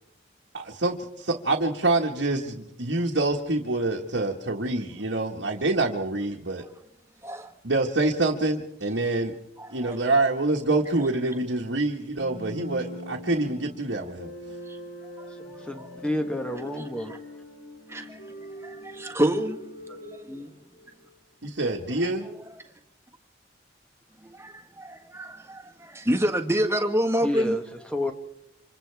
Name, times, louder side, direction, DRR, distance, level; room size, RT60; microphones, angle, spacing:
voice 1, 0.5-6.6 7.6-9.3 9.7-14.3 21.4-22.3, right 2 dB, 80° right, 1.6 m, -26 dB
voice 2, 7.2-7.5 9.6-10.0 14.6-14.8 15.2-15.9 16.8-17.2 17.9-19.6 20.0-20.4 22.0-22.6 24.2-27.6, equal, 15° right, 1.5 m, -29 dB
sound 1, 12.2-21.1, left 1 dB, 70° left, 3.8 m, -42 dB
voice 3, 15.3-17.1 19.9-20.0 20.2-20.5 27.2-28.1, left 1 dB, 5° left, 1.2 m, -31 dB
28.5 x 26.0 x 3.5 m
head